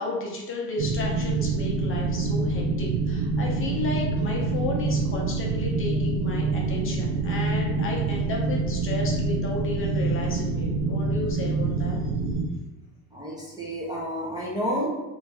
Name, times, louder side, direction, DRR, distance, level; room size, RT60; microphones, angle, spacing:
voice 1, 0.0-12.0, left 3 dB, 30° left, -2 dB, 0.6 m, -33 dB
sound 1, 0.8-12.5, right 3 dB, 80° right, 0.7 m, -26 dB
voice 2, 13.1-14.9, equal, 10° right, -5 dB, 0.6 m, -30 dB
3.2 x 2.5 x 3.4 m, 1.1 s
cardioid pair, 130°, 42 cm